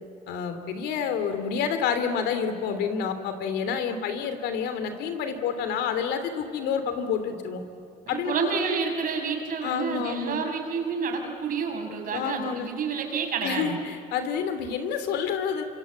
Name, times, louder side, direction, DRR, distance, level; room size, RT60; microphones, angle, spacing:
voice 1, 0.3-7.6 8.1-8.5 9.6-10.4 12.1-12.7 13.4-15.6, left 6 dB, 85° left, 9 dB, 3.1 m, -29 dB
voice 2, 8.1-13.8, right 5 dB, 55° right, 2 dB, 6.8 m, -29 dB
27.0 x 26.0 x 8.5 m, 2.8 s
cardioid pair, 110°, 17 cm